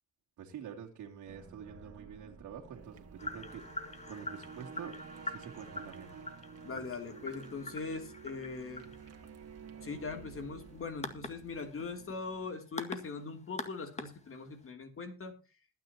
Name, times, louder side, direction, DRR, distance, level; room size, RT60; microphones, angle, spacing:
voice 1, 0.4-4.9 5.2-6.1, right 8 dB, 80° right, -2 dB, 2.7 m, -47 dB
sound 1, 1.3-12.5, right 6 dB, 55° right, 2.1 m, -51 dB
sound 2, 3.2-14.7, left 2 dB, 20° left, 2.0 m, -45 dB
voice 2, 6.6-8.9 9.8-15.3, left 4 dB, 45° left, 5 dB, 2.9 m, -41 dB
21.0 x 9.8 x 2.9 m, 0.30 s
cardioid pair, 90°, 30 cm